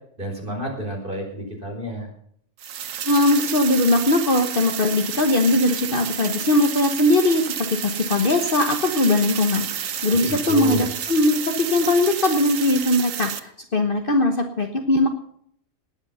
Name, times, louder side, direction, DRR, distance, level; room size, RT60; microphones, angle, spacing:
voice 1, 0.2-2.1 10.1-10.9, right 1 dB, 40° right, 1 dB, 4.6 m, -30 dB
sound 1, 2.6-13.4, right 9 dB, 80° right, 1.3 m, -30 dB
voice 2, 3.0-15.1, left 2 dB, 45° left, 5 dB, 1.3 m, -20 dB
19.0 x 8.9 x 5.6 m, 0.67 s
omnidirectional pair, 1.4 m